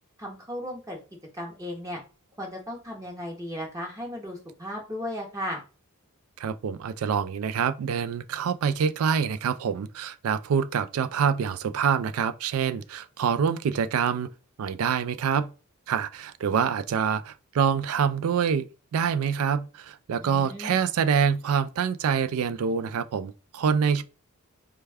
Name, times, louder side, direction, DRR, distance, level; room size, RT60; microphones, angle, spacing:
voice 1, 0.2-1.0 1.3-2.0 2.4-5.6 20.2-20.8, equal, 15° right, 0.7 m, -35 dB
voice 2, 6.4-14.3 14.6-15.5 15.9-18.7 18.9-24.0, right 7 dB, 75° right, 0.3 m, -26 dB
3.3 x 2.2 x 3.3 m
head